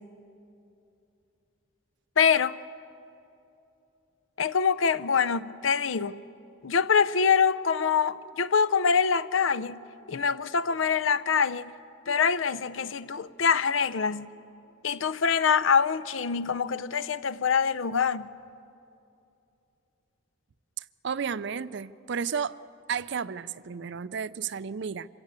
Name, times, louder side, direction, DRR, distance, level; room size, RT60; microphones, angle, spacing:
voice 1, 2.2-2.6 4.4-6.2 6.6-9.8 10.1-11.7 12.1-14.3 14.8-18.3, left 6 dB, 70° left, 0.6 m, -25 dB
voice 2, 20.8-22.6 22.9-25.1, right 6 dB, 55° right, 0.4 m, -32 dB
26.5 x 16.5 x 8.2 m
head